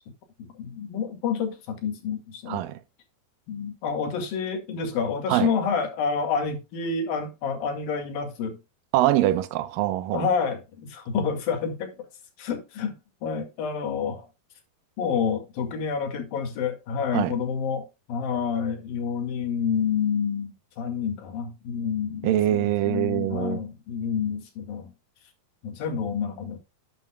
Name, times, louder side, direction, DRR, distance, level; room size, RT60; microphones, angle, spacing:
voice 1, 0.6-2.6 3.5-8.6 10.1-12.1 12.4-13.0 13.2-14.3 15.0-24.9 25.6-26.6, left 6 dB, 70° left, 3.8 m, -28 dB
voice 2, 2.5-2.8 5.3-5.5 8.9-10.3 17.1-17.4 22.2-23.6, right 13 dB, 75° right, 2.5 m, -24 dB
12.5 x 9.0 x 2.3 m
omnidirectional pair, 4.3 m